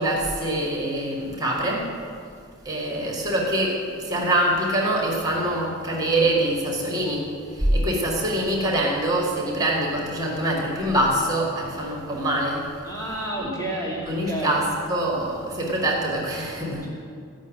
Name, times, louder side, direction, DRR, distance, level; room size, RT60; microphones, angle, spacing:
voice 1, 0.0-1.9 2.7-12.7 13.4-13.5 14.1-16.9, right 1 dB, 15° right, -2 dB, 2.0 m, -24 dB
voice 2, 12.8-14.6, right 1 dB, 15° left, -4 dB, 2.6 m, -30 dB
14.5 x 6.2 x 9.1 m, 2.3 s
head